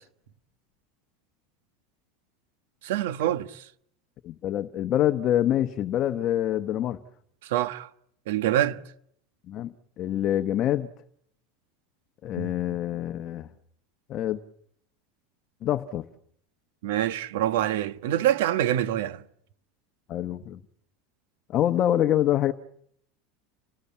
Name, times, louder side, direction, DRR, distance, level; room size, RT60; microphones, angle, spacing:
voice 1, 2.8-3.7 7.4-7.9 8.3-8.8 12.4-12.5 16.8-19.2, right 12 dB, 75° right, 1.4 m, -26 dB
voice 2, 4.2-7.0 9.5-10.9 12.2-13.5 14.1-14.4 15.6-16.1 20.1-20.6 21.5-22.5, left 12 dB, 30° left, 1.0 m, -26 dB
29.0 x 19.0 x 8.6 m
supercardioid pair, 170°, 0 cm